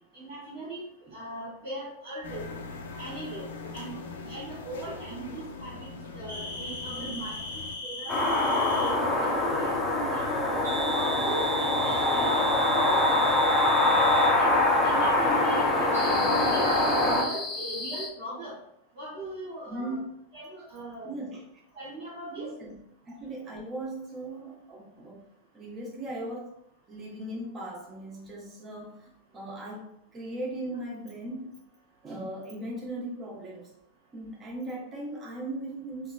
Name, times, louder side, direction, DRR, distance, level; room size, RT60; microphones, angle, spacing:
voice 1, 0.1-0.8 1.1-2.4 3.0-3.5 3.7-3.9 4.2-5.9 6.1-10.5 10.9-13.4 13.8-18.6 18.9-20.0 20.3-21.1 21.7-22.5, right 1 dB, 65° right, -10 dB, 1.4 m, -39 dB
sound 1, 2.2-7.8, left 4 dB, 60° left, 0.5 m, -41 dB
sound 2, 6.3-9.0 10.6-14.4 15.9-18.1, equal, 85° right, 1.0 m, -35 dB
sound 3, 8.1-17.2, left 2 dB, 20° left, 0.6 m, -24 dB
voice 2, 19.7-20.1 21.0-21.4 22.4-22.8 23.1-25.2 25.5-26.5 26.9-31.5 32.0-33.7 34.1-36.1, right 1 dB, 25° right, -2 dB, 1.0 m, -38 dB
3.5 x 3.1 x 2.3 m, 0.75 s
figure-of-eight pair, 90°, 0 cm